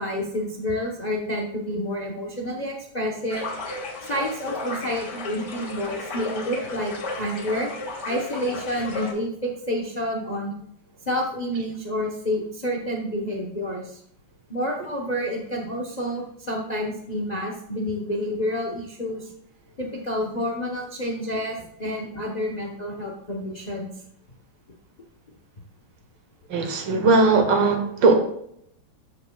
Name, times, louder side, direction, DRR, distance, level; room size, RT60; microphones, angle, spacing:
voice 1, 0.0-3.5 4.1-7.7 8.0-10.5 11.1-14.0 14.5-19.3 19.8-23.9, equal, 35° left, 0 dB, 0.7 m, -29 dB
sound 1, 3.3-9.1, left 3 dB, 60° left, 2.1 m, -34 dB
voice 2, 26.5-28.1, right 3 dB, 70° right, 4 dB, 1.8 m, -19 dB
13.0 x 5.1 x 2.3 m, 0.71 s
omnidirectional pair, 2.2 m